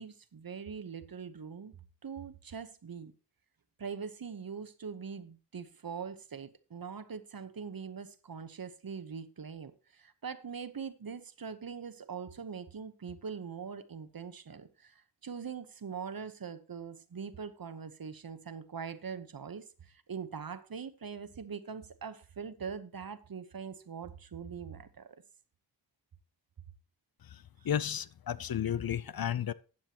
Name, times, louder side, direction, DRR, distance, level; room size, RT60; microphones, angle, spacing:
voice 1, 0.0-1.8 2.0-3.1 3.8-25.2, right 6 dB, 55° right, 1.0 m, -42 dB
voice 2, 27.3-29.5, left 9 dB, 60° left, 0.6 m, -33 dB
13.5 x 8.8 x 2.9 m
cardioid pair, 55°, 41 cm